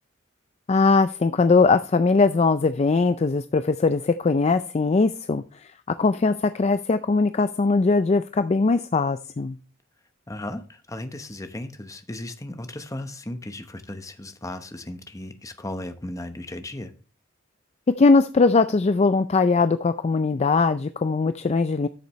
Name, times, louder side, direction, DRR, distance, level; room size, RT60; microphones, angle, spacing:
voice 1, 0.7-9.6 17.9-21.9, left 4 dB, 35° left, 0.4 m, -20 dB
voice 2, 10.3-16.9, left 1 dB, 15° left, 0.9 m, -36 dB
12.5 x 6.7 x 3.1 m
head